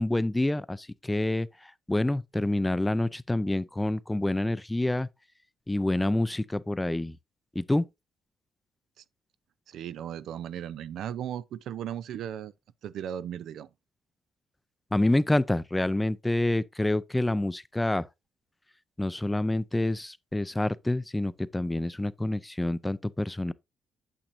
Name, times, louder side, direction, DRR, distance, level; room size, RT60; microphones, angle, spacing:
voice 1, 0.0-5.1 5.7-7.2 7.6-7.8 14.9-18.1 19.0-23.5, left 1 dB, 10° left, 0.5 m, -27 dB
voice 2, 9.7-12.5 12.8-13.7, right 10 dB, 75° right, 0.5 m, -36 dB
8.8 x 6.7 x 2.6 m
cardioid pair, 90°, 0 cm